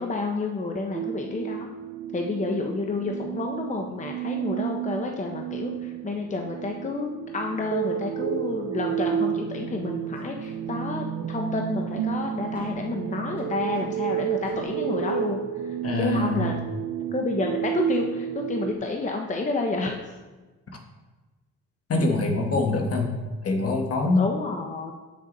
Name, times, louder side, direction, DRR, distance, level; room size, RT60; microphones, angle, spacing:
voice 1, 0.0-1.7 2.1-16.5 17.1-20.0 24.2-24.9, left 3 dB, 25° left, 2 dB, 0.9 m, -30 dB
sound 1, 0.9-18.7, right 10 dB, 60° right, 0.4 m, -31 dB
sound 2, 9.7-10.5 11.5-15.1, equal, 5° right, 2.8 m, -49 dB
voice 2, 15.8-16.5 21.9-23.1 23.4-24.2, left 3 dB, 50° left, 3 dB, 1.6 m, -24 dB
8.8 x 6.6 x 4.0 m, 1.2 s
cardioid pair, 90°, 30 cm